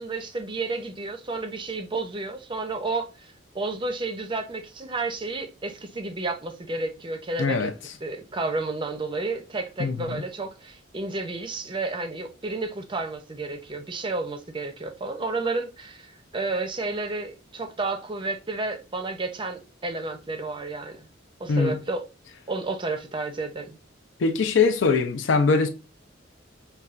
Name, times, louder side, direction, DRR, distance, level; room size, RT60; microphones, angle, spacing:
voice 1, 0.0-7.7 8.0-21.0 21.4-22.0 22.5-23.8, right 3 dB, 25° right, 0.5 m, -31 dB
voice 2, 7.4-7.7 9.8-10.1 21.5-21.8 24.2-25.7, left 4 dB, 70° left, 0.5 m, -22 dB
5.4 x 2.2 x 2.4 m
head